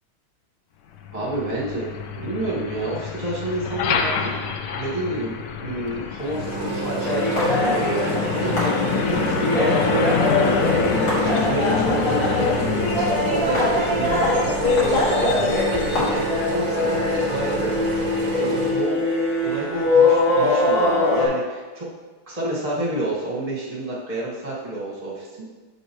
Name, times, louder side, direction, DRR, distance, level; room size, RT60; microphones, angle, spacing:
Truck, 0.9-18.6, left 6 dB, 75° left, 1.0 m, -28 dB
voice 1, 1.1-4.3 4.7-10.1 10.6-17.7 18.3-19.0 19.4-21.9 22.3-25.3, right 1 dB, 20° right, -5 dB, 1.3 m, -29 dB
sound 1, 6.2-18.7, right 3 dB, 50° right, 1.1 m, -28 dB
sound 2, 7.0-21.3, left 2 dB, 50° left, 2.2 m, -22 dB
6.6 x 6.5 x 3.1 m, 1.3 s
omnidirectional pair, 2.4 m